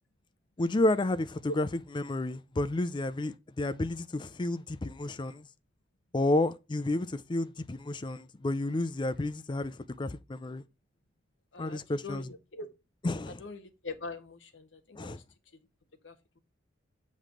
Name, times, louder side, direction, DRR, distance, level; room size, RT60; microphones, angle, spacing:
voice 1, 0.6-1.7 1.9-5.5 6.1-10.6 11.6-12.2 13.0-13.4 15.0-15.2, left 2 dB, 25° left, 0.4 m, -31 dB
voice 2, 11.5-12.7 13.3-15.2 15.5-15.6 16.0-16.4, left 3 dB, 75° left, 1.2 m, -43 dB
7.5 x 3.2 x 5.1 m
head